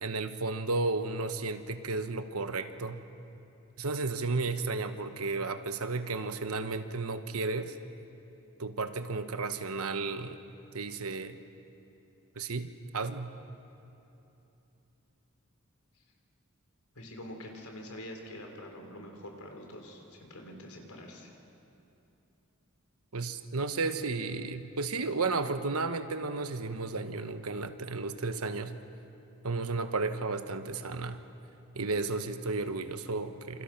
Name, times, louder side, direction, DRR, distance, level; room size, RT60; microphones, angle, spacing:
voice 1, 0.0-3.0 3.8-7.8 8.6-10.4 10.7-11.4 12.3-13.3 23.1-28.8 29.4-31.2 31.7-33.6, right 3 dB, 90° right, 9 dB, 1.2 m, -33 dB
voice 2, 16.9-21.3, left 1 dB, 90° left, 2 dB, 4.0 m, -45 dB
27.5 x 26.5 x 6.0 m, 3.0 s
head